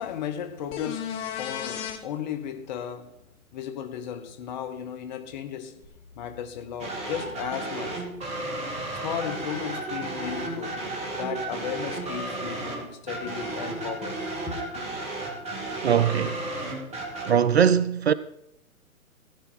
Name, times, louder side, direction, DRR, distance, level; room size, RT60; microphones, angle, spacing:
voice 1, 0.0-3.1 3.5-5.8 6.2-8.1 9.0-10.8 11.1-14.6, left 9 dB, 30° left, 1.2 m, -35 dB
sound 1, 0.7-2.0 5.8-5.9, left 8 dB, 15° left, 0.8 m, -33 dB
sound 2, 6.8-17.3, right 2 dB, 15° right, 2.1 m, -33 dB
voice 2, 15.8-16.4 17.2-18.1, right 8 dB, 50° right, 0.5 m, -21 dB
15.0 x 9.0 x 4.5 m
figure-of-eight pair, 130°, 43 cm